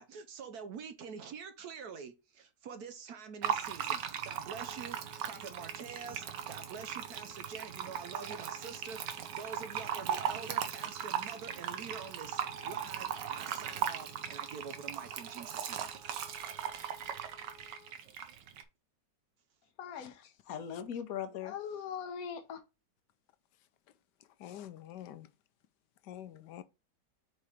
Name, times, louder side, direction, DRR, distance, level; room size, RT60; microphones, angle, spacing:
voice 1, 0.0-5.0 5.3-16.0, right 6 dB, 70° right, 1.2 m, -46 dB
Fill (with liquid), 3.4-18.6, right 9 dB, 85° right, 1.5 m, -38 dB
Wind instrument woodwind instrument, 4.5-18.0, left 3 dB, 35° right, 1.4 m, -59 dB
voice 2, 19.8-22.6, left 8 dB, 60° left, 1.3 m, -40 dB
voice 3, 24.4-25.3 26.0-26.6, left 11 dB, 80° left, 1.2 m, -46 dB
4.9 x 4.8 x 4.2 m
omnidirectional pair, 1.8 m